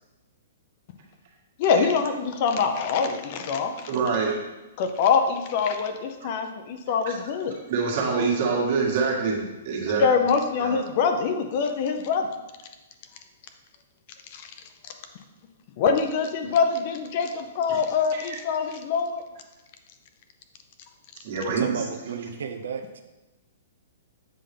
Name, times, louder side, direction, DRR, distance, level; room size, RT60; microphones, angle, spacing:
voice 1, 1.6-3.9 4.8-7.5 10.0-12.3 14.3-14.4 15.8-19.2, left 5 dB, 40° left, 7 dB, 0.6 m, -24 dB
voice 2, 3.9-4.4 6.9-7.2 7.7-10.1 10.6-10.8 17.7-17.8 18.1-18.4 21.2-21.8, right 5 dB, 45° right, -1 dB, 1.6 m, -26 dB
voice 3, 21.6-23.0, right 6 dB, 85° right, 6 dB, 0.7 m, -33 dB
7.6 x 5.5 x 3.4 m, 1.1 s
hypercardioid pair, 165°, 0 cm